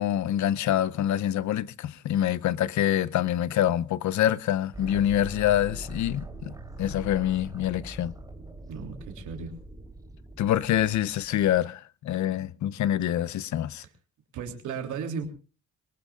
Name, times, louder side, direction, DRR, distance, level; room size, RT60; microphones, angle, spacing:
voice 1, 0.0-6.5 6.8-8.1 10.4-13.8, left 11 dB, 70° left, 0.7 m, -26 dB
sound 1, 4.7-11.6, right 2 dB, 10° right, 3.4 m, -42 dB
voice 2, 8.6-9.5 14.3-15.3, right 6 dB, 80° right, 3.2 m, -35 dB
23.0 x 19.0 x 2.5 m
cardioid pair, 90°, 30 cm